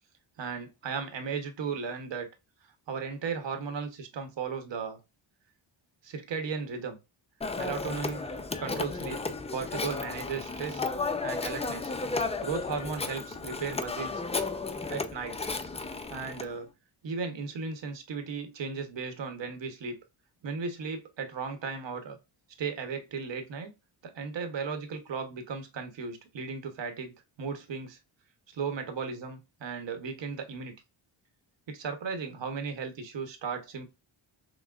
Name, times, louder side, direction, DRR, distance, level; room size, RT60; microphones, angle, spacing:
voice 1, 0.4-2.3 2.9-5.0 6.0-7.0 7.6-8.2 8.6-9.2 9.5-10.8 11.2-11.9 12.4-14.2 14.9-15.5 16.1-16.7 17.0-20.0 20.4-22.2 22.6-23.7 24.0-28.0 28.5-30.7 31.7-33.9, right 5 dB, 60° right, 1.1 m, -36 dB
Telephone, 7.4-16.5, left 3 dB, 15° left, 0.3 m, -34 dB
6.0 x 2.1 x 2.4 m
cardioid pair, 90°, 49 cm